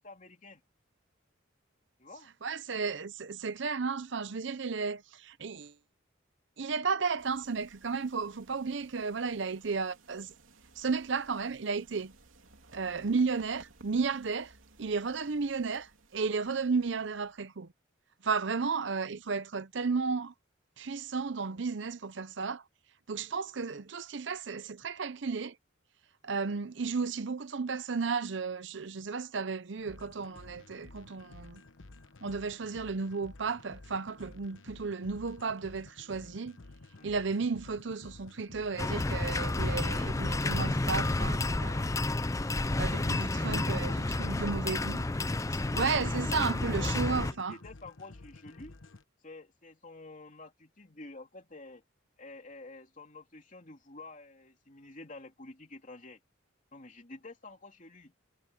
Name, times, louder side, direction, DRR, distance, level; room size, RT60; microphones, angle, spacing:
voice 1, 0.0-0.6 2.0-2.3 37.0-37.1 42.6-44.8 45.6-48.7 49.2-51.8 52.2-56.2 56.7-58.1, left 2 dB, 40° left, 3.0 m, -49 dB
voice 2, 2.4-5.7 6.6-10.3 10.8-12.1 12.7-14.5 14.8-17.7 18.2-20.3 20.8-22.6 23.1-25.5 26.2-31.6 32.2-36.6 37.0-42.0 42.8-43.9 44.2-45.0 45.5-47.6, right 4 dB, 65° right, 0.7 m, -33 dB
sound 1, 7.2-17.5, right 3 dB, 85° right, 3.1 m, -59 dB
sound 2, 29.8-49.0, left 2 dB, 75° left, 1.0 m, -52 dB
sound 3, 38.8-47.3, left 2 dB, 15° left, 0.4 m, -30 dB
head